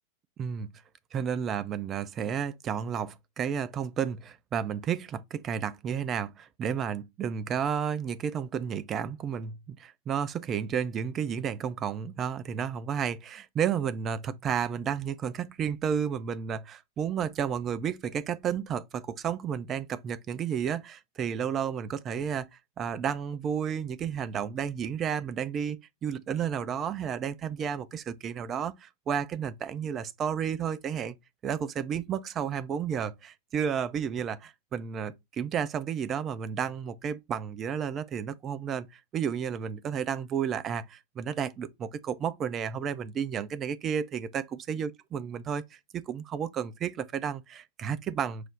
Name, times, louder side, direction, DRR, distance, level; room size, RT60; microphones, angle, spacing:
voice 1, 0.4-0.7 1.1-22.5 22.8-31.1 31.4-48.5, right 8 dB, 30° right, 0.4 m, -32 dB
4.8 x 2.0 x 3.7 m
figure-of-eight pair, 90°, 0 cm